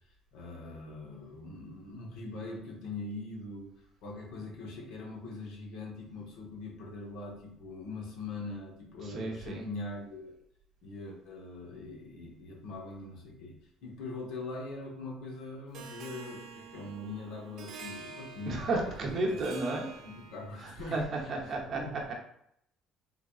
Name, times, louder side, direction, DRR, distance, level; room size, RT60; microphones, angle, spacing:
voice 1, 0.3-3.7 4.0-10.3 10.8-19.4 20.0-21.9, left 2 dB, 70° left, -1 dB, 1.0 m, -42 dB
voice 2, 9.0-9.7 18.5-19.9 20.6-21.0 21.3-22.1, right 2 dB, 35° right, 0 dB, 0.7 m, -33 dB
Harp, 15.7-20.7, right 4 dB, 60° right, 0.4 m, -48 dB
3.7 x 3.3 x 2.3 m, 0.73 s
cardioid pair, 160°, 0 cm